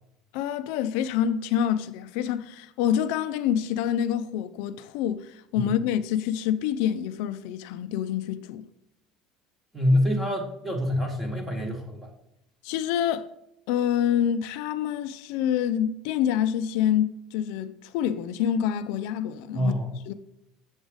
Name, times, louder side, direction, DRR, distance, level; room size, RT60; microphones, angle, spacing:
voice 1, 0.3-8.6 12.6-13.3 13.7-19.8 20.1-20.2, left 9 dB, 65° left, 0.4 m, -27 dB
voice 2, 9.7-12.1 19.5-19.9, left 1 dB, 10° right, 1.1 m, -26 dB
7.0 x 4.0 x 5.0 m
cardioid pair, 175°, 0 cm